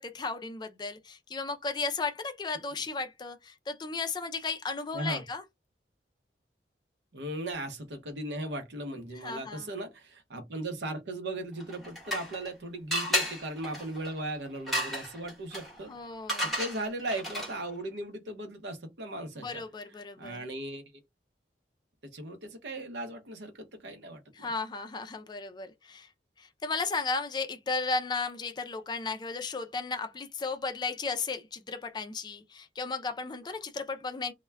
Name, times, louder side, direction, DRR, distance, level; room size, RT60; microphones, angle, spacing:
voice 1, 0.0-5.4 9.1-9.7 15.9-16.5 19.4-20.4 24.3-26.1 26.4-34.3, left 4 dB, 25° left, 0.3 m, -35 dB
voice 2, 7.1-15.9 16.4-19.6 20.2-20.8 22.1-24.5, right 1 dB, 80° right, 0.7 m, -37 dB
sound 1, 11.6-12.5 12.9-17.7, equal, ahead, 0.8 m, -34 dB
2.2 x 2.1 x 3.2 m
head